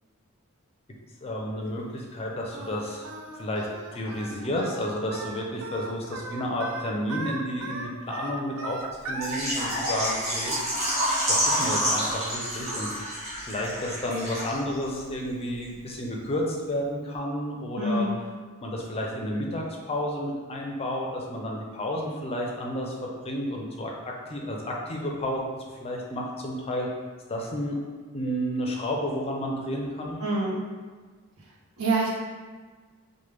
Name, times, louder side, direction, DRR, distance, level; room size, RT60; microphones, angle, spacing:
voice 1, 1.2-3.7 3.9-8.8 9.1-10.6 11.3-12.9 13.4-18.1 18.6-23.9 24.3-26.9 27.3-27.8 28.1-30.2, left 1 dB, 30° left, -1 dB, 0.4 m, -31 dB
Singing, 2.5-9.4, right 3 dB, 70° right, 0.3 m, -38 dB
Water / Liquid, 9.2-14.8 15.1-15.2 15.6-15.7, equal, 30° right, 0.9 m, -28 dB
voice 2, 17.8-18.1 30.2-30.6 31.8-32.1, right 2 dB, 85° right, -4 dB, 0.7 m, -25 dB
3.0 x 2.1 x 3.3 m, 1.4 s
head